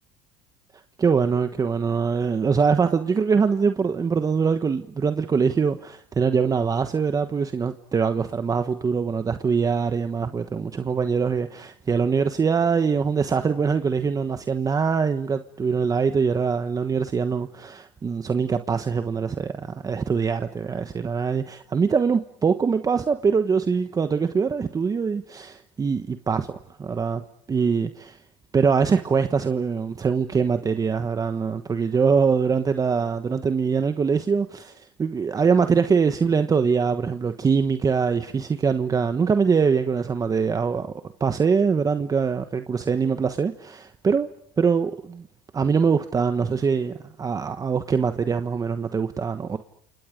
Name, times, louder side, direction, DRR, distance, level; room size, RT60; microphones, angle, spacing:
voice 1, 1.0-27.2 27.5-28.2 28.5-40.9 41.2-44.3 44.6-45.3 45.5-49.6, right 5 dB, 20° right, 1.2 m, -23 dB
29.5 x 28.0 x 5.2 m
supercardioid pair, 125°, 16 cm